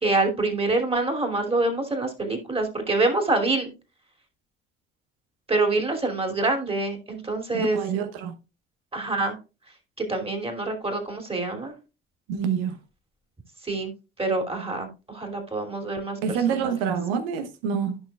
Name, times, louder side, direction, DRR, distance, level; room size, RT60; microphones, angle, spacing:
voice 1, 0.0-3.7 5.5-7.8 8.9-9.4 10.0-11.7 13.6-13.9 14.2-16.8, right 2 dB, 20° right, 2.8 m, -26 dB
voice 2, 7.5-8.3 12.3-12.8 16.2-18.0, right 7 dB, 65° right, 1.0 m, -27 dB
14.0 x 5.9 x 2.3 m
figure-of-eight pair, 50°, 31 cm